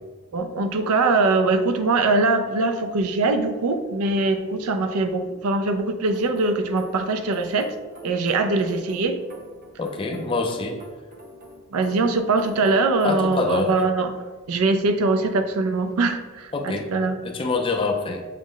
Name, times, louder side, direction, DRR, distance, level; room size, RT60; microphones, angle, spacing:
voice 1, 0.3-7.7 8.0-9.2 11.7-17.2, right 3 dB, 85° right, 8 dB, 0.4 m, -22 dB
sound 1, 6.1-13.5, right 1 dB, 40° right, 0.7 m, -45 dB
voice 2, 9.8-10.8 13.0-13.7 16.5-16.9 17.2-18.2, left 3 dB, 25° left, 4 dB, 0.3 m, -25 dB
6.0 x 2.1 x 3.7 m, 1.3 s
head